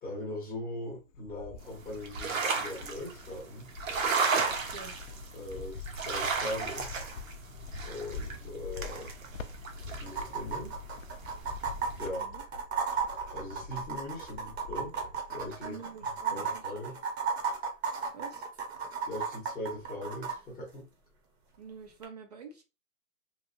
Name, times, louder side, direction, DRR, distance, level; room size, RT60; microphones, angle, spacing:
voice 1, 0.0-3.7 5.3-7.0 7.8-9.1 9.9-10.7 12.0-12.2 13.3-14.9 15.3-15.8 16.3-17.0 19.1-20.9, left 1 dB, 5° left, 0.8 m, -40 dB
Cricket, 0.8-2.3 2.8-15.7 16.0-16.6, left 4 dB, 75° left, 0.5 m, -45 dB
sound 1, 1.6-12.0, right 5 dB, 80° right, 0.9 m, -35 dB
voice 2, 4.5-4.9 12.0-12.4 15.6-16.9 18.1-18.5 21.6-22.6, right 5 dB, 30° right, 0.5 m, -47 dB
sound 2, 9.0-9.1 9.3-9.4 10.1-20.4 22.0-22.1, right 6 dB, 50° right, 0.9 m, -34 dB
2.9 x 2.3 x 2.6 m
hypercardioid pair, 165°, 39 cm